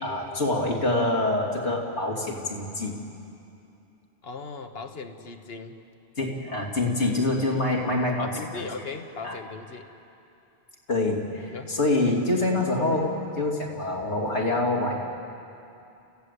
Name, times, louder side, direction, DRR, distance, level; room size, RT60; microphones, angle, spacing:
voice 1, 0.0-2.9 6.2-8.7 9.2-9.4 10.9-14.9, left 2 dB, 85° left, -1 dB, 3.1 m, -26 dB
voice 2, 4.2-5.8 8.2-9.9 11.5-11.8, left 4 dB, 65° left, 7 dB, 1.4 m, -38 dB
28.5 x 15.5 x 8.3 m, 2.7 s
omnidirectional pair, 1.1 m